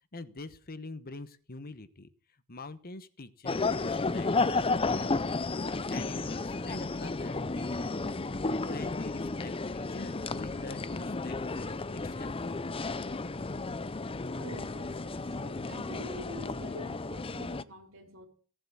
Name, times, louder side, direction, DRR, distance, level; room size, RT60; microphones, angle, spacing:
voice 1, 0.1-2.1 2.5-12.3, left 2 dB, 45° left, 13 dB, 1.1 m, -45 dB
sound 1, 3.5-17.6, left 3 dB, 25° left, 0.6 m, -33 dB
voice 2, 14.4-18.3, right 1 dB, 65° right, 5 dB, 3.9 m, -47 dB
17.5 x 7.7 x 8.6 m, 0.42 s
head